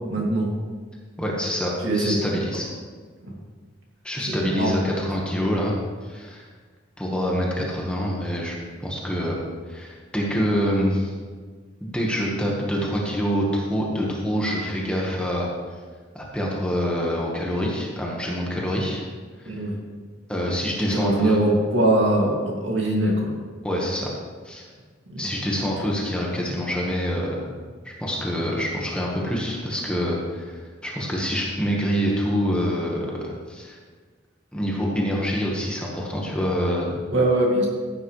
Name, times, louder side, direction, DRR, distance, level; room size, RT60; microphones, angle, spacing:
voice 1, 0.1-0.5 1.8-2.2 3.3-3.4 4.3-4.7 19.5-19.8 20.8-23.3 25.1-25.3 37.1-37.7, right 1 dB, 65° right, -2 dB, 2.5 m, -22 dB
voice 2, 1.2-2.7 4.0-5.7 6.0-6.4 7.0-9.4 9.7-11.1 11.8-15.5 16.1-19.0 19.4-19.5 20.3-21.4 23.6-24.1 24.4-24.6 25.2-27.4 27.8-33.8 34.5-36.9, equal, 5° left, -3 dB, 1.5 m, -26 dB
14.5 x 9.0 x 3.3 m, 1.5 s
head